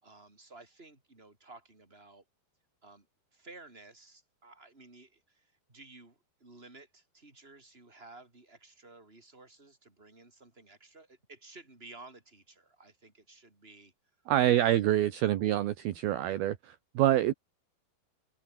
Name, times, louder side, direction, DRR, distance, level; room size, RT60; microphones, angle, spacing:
voice 1, 0.0-2.2 2.8-3.1 3.3-13.9 14.5-14.9 15.4-15.7 16.2-16.4, right 3 dB, 10° right, 5.2 m, -54 dB
voice 2, 14.3-16.5 16.9-17.3, right 13 dB, 65° right, 2.9 m, -26 dB
open air
omnidirectional pair, 5.2 m